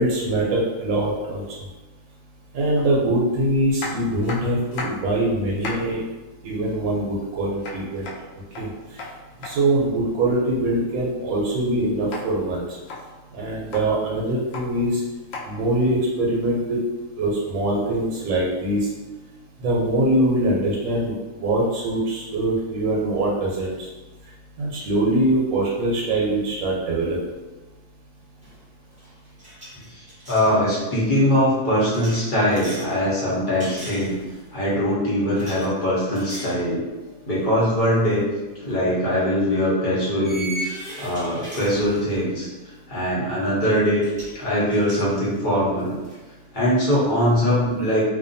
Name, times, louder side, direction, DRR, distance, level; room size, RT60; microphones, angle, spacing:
voice 1, 0.0-1.4 2.5-6.0 6.4-8.1 8.6-9.1 9.4-12.7 13.3-15.0 15.4-16.8 17.2-18.9 19.6-23.9 24.6-27.2, right 1 dB, 90° right, -4 dB, 1.1 m, -23 dB
sound 1, 2.8-2.9 3.8-5.1 5.4-5.9 7.6-9.5 12.1-12.2 12.7-13.0 13.5-13.9 14.3-14.7 15.3-15.5 16.7-16.8, left 3 dB, 75° left, 0.9 m, -34 dB
sound 2, 28.4-28.7 28.9-30.5 31.9-32.9 33.6-34.5 35.4-35.7 36.2-36.6 37.1-37.2 38.8-38.9 40.2-42.3 43.7-43.8 44.0-44.4 44.7-46.2, right 1 dB, 5° right, 0.6 m, -38 dB
voice 2, 29.9-34.1 34.5-36.8 37.2-38.2 38.6-42.5 42.9-44.0 44.3-46.0 46.5-48.1, equal, 40° left, -7 dB, 0.9 m, -22 dB
2.6 x 2.2 x 2.5 m, 1.2 s
omnidirectional pair, 1.4 m